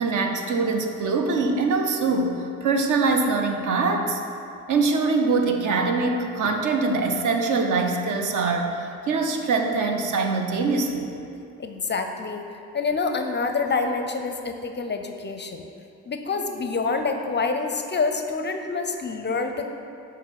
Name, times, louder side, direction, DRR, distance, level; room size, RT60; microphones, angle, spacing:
voice 1, 0.0-4.2 4.7-11.1, right 3 dB, 55° right, 4 dB, 0.8 m, -23 dB
voice 2, 11.6-12.4 12.7-15.6 16.1-19.6, left 4 dB, 30° left, 5 dB, 0.5 m, -27 dB
6.7 x 3.0 x 5.9 m, 2.6 s
hypercardioid pair, 45°, 37 cm